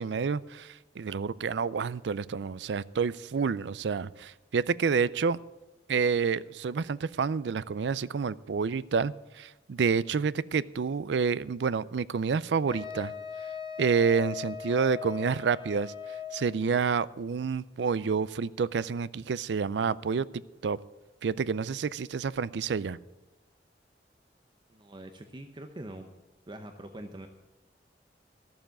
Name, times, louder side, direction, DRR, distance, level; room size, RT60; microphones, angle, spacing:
voice 1, 0.0-5.4 5.9-13.1 13.8-15.9 16.3-20.3 20.6-20.8 21.2-23.0, right 5 dB, 75° right, 19 dB, 0.4 m, -29 dB
Wind instrument woodwind instrument, 12.7-16.5, left 8 dB, 30° left, 1.0 m, -39 dB
voice 2, 24.7-26.1 26.5-27.3, right 1 dB, 25° right, 6 dB, 0.7 m, -43 dB
13.5 x 7.1 x 8.9 m, 1.1 s
head